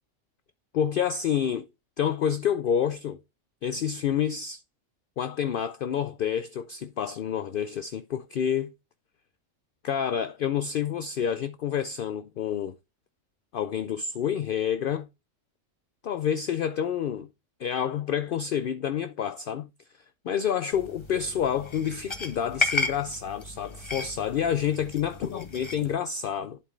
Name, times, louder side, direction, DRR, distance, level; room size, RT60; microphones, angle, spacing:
voice 1, 0.7-1.7 2.0-3.2 3.6-4.6 5.2-8.7 9.8-12.7 13.5-15.1 16.0-17.3 17.6-19.7 20.2-26.6, left 8 dB, 65° left, 0.5 m, -28 dB
sound 1, 20.7-25.9, left 3 dB, 25° left, 1.1 m, -34 dB
11.0 x 4.4 x 3.2 m
omnidirectional pair, 1.3 m